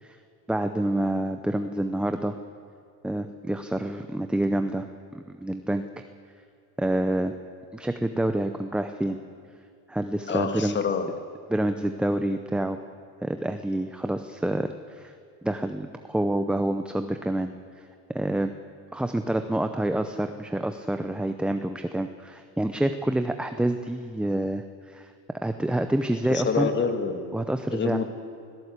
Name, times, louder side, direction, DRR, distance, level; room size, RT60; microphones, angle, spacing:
voice 1, 0.5-2.3 3.0-4.9 5.1-6.0 6.8-7.3 7.7-9.2 9.9-10.8 11.5-12.8 13.2-15.1 15.4-17.5 18.1-18.5 18.9-25.1 25.4-26.7 27.3-28.0, right 1 dB, ahead, 8 dB, 0.5 m, -27 dB
voice 2, 10.3-11.2 26.3-27.3 27.7-28.1, left 5 dB, 25° left, 7 dB, 1.9 m, -27 dB
24.5 x 17.0 x 8.3 m, 2.4 s
cardioid pair, 140°, 42 cm